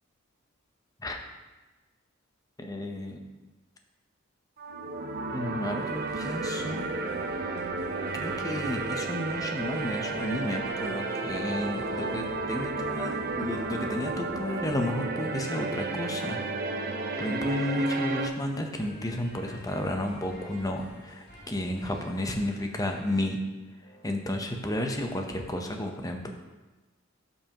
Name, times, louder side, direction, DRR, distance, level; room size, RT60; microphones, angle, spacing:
voice 1, 2.6-3.2 5.3-6.8 8.1-16.4 17.2-23.4 24.0-26.3, left 1 dB, 20° left, 3 dB, 0.7 m, -32 dB
sound 1, 4.6-18.3, right 3 dB, 45° right, 0.6 m, -32 dB
sound 2, 5.9-23.4 23.8-24.1, left 1 dB, 55° left, 2.8 m, -49 dB
11.5 x 5.5 x 2.9 m, 1.2 s
head